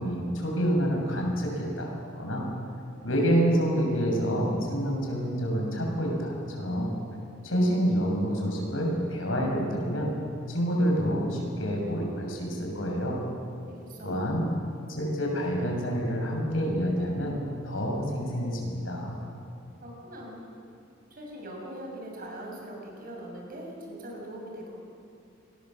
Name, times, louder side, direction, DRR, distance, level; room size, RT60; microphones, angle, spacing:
voice 1, 0.0-1.9 2.1-2.5 3.0-6.9 7.4-10.1 10.5-13.2 14.0-14.5 15.0-17.4 17.6-19.2, equal, 90° left, 0 dB, 6.8 m, -27 dB
voice 2, 13.7-14.2 19.8-20.5 21.1-24.7, right 1 dB, 45° right, -1 dB, 6.9 m, -41 dB
27.0 x 21.0 x 7.7 m, 2.5 s
head